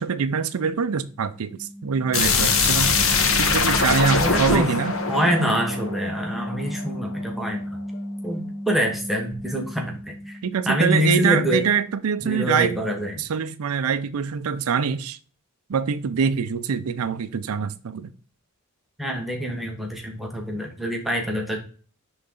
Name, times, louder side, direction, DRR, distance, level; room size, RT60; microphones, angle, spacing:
voice 1, 0.0-3.0 3.4-4.9 10.4-12.8 13.2-15.2 15.7-18.1, right 6 dB, 75° right, 0.5 m, -24 dB
sound 1, 1.0-11.1, equal, 25° left, 1.5 m, -35 dB
sound 2, 2.1-6.9, left 4 dB, 65° left, 1.3 m, -22 dB
voice 2, 4.2-4.7 5.1-7.8 8.2-10.4 10.7-11.6 12.2-13.2 19.0-21.6, equal, ahead, 1.2 m, -25 dB
10.5 x 3.9 x 3.8 m
head